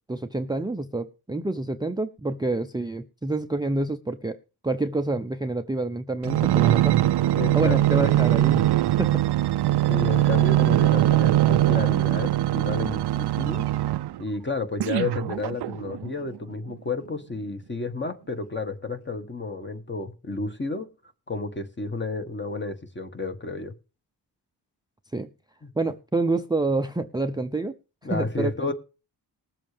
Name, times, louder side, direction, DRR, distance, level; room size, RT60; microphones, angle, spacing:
voice 1, 0.1-4.4 4.6-7.0 7.5-9.2 25.1-25.3 25.8-27.7 28.1-28.5, right 2 dB, 10° right, 0.6 m, -27 dB
sound 1, 6.2-14.2 14.8-16.1 16.7-16.8, right 14 dB, 70° right, 0.5 m, -21 dB
voice 2, 7.3-8.2 9.9-13.6 14.2-20.9 21.3-23.7 25.6-25.9 28.0-28.7, left 3 dB, 25° left, 1.5 m, -31 dB
20.0 x 7.5 x 3.4 m
cardioid pair, 95°, 42 cm